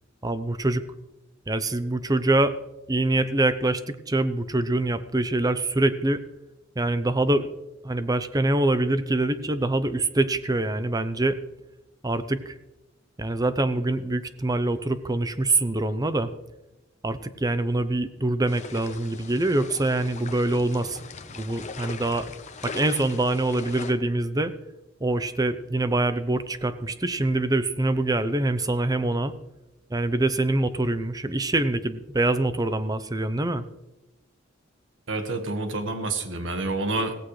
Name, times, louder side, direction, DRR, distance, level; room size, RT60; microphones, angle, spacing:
voice 1, 0.2-0.8 1.5-2.5 2.9-6.2 6.8-7.5 7.8-11.4 12.0-12.5 13.2-16.3 17.0-21.0 21.3-22.3 22.6-24.5 25.0-29.3 29.9-33.6, right 2 dB, 20° right, 12 dB, 0.7 m, -24 dB
sound 1, 18.5-23.9, left 4 dB, 40° left, 0.9 m, -40 dB
voice 2, 35.1-37.2, right 2 dB, 70° right, 7 dB, 1.5 m, -28 dB
16.5 x 15.0 x 3.2 m, 0.98 s
head